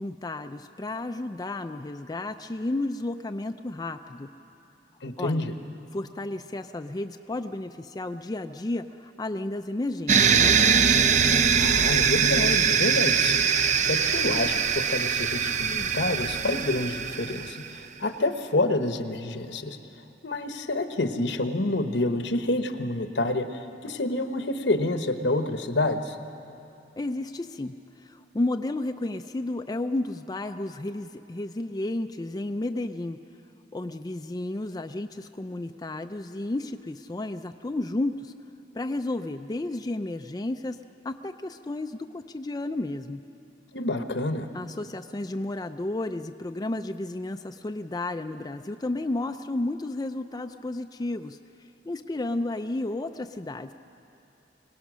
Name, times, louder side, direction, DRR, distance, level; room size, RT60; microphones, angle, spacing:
voice 1, 0.0-4.3 5.2-5.4 5.9-10.6 27.0-33.2 33.7-38.3 38.7-40.8 41.0-43.2 44.5-51.4 51.9-53.7, left 2 dB, 20° left, 6 dB, 0.4 m, -32 dB
voice 2, 5.0-5.5 11.5-19.8 20.2-26.2 43.7-44.5, left 2 dB, 75° left, 8 dB, 1.1 m, -28 dB
sound 1, 10.1-17.7, right 6 dB, 40° right, 0.6 m, -22 dB
24.5 x 18.5 x 6.2 m, 2.9 s
head